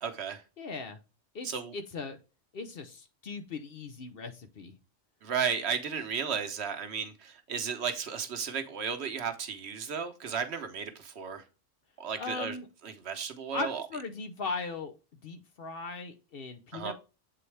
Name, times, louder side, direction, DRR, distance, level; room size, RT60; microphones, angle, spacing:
voice 1, 0.0-0.4 1.4-1.7 5.2-11.4 12.0-12.6 12.8-13.8 16.7-16.9, right 6 dB, 60° right, 1.0 m, -34 dB
voice 2, 0.6-1.0 1.3-2.2 2.5-4.8 12.2-12.7 13.5-14.9 15.2-16.9, left 3 dB, 55° left, 0.8 m, -38 dB
7.7 x 4.1 x 3.3 m
omnidirectional pair, 1.3 m